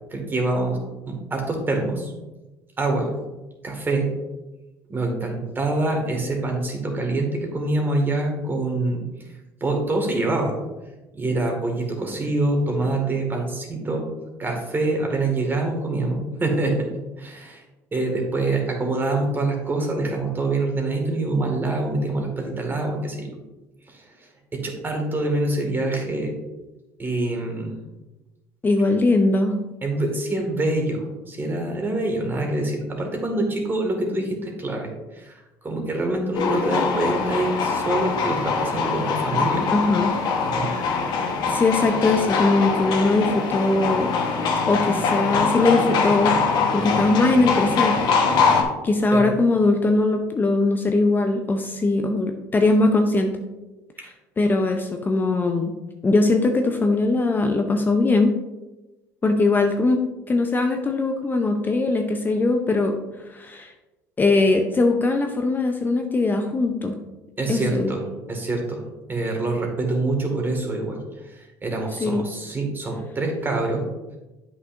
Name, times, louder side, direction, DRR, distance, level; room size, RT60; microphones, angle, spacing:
voice 1, 0.1-0.8 1.1-2.1 2.8-3.1 3.6-4.1 4.9-9.0 9.6-10.6 11.1-14.1 14.4-16.9 17.2-17.6 17.9-23.3 23.9-24.0 24.5-26.3 27.0-27.7 29.8-35.3 35.6-39.8 40.4-40.7 49.1-49.3 67.4-68.0 68.3-68.8 69.1-71.0 71.6-73.9, right 2 dB, 25° right, 2 dB, 1.9 m, -25 dB
voice 2, 28.6-29.6 39.7-40.1 40.6-41.0 41.5-44.1 44.7-46.4 46.7-48.1 48.8-53.3 54.0-55.7 56.0-58.3 59.2-63.0 63.3-63.7 64.2-66.9 67.5-68.0 72.0-72.2, left 2 dB, 25° left, 4 dB, 0.6 m, -21 dB
sound 1, 36.3-48.6, left 5 dB, 60° left, 1.2 m, -23 dB
8.1 x 5.9 x 2.6 m, 1.1 s
supercardioid pair, 85°, 8 cm